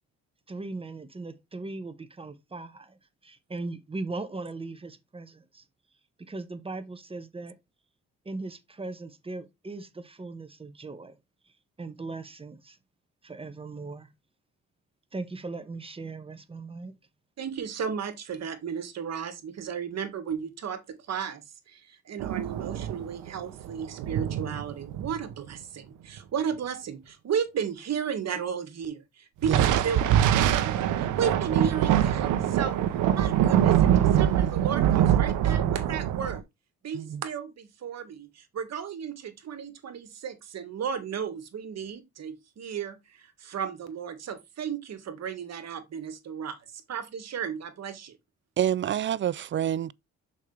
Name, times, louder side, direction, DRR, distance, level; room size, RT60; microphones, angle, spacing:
voice 1, 0.5-5.6 6.2-7.5 8.2-11.2 11.8-12.8 13.2-14.1 15.1-16.9, right 3 dB, 20° right, 1.3 m, -39 dB
voice 2, 17.4-32.8 33.1-36.4 36.8-48.2, right 7 dB, 60° right, 1.9 m, -34 dB
sound 1, 22.2-25.5 29.4-36.4, right 10 dB, 90° right, 0.8 m, -24 dB
voice 3, 48.6-49.9, right 10 dB, 40° right, 0.4 m, -27 dB
6.5 x 5.2 x 3.3 m
cardioid pair, 90°, 30 cm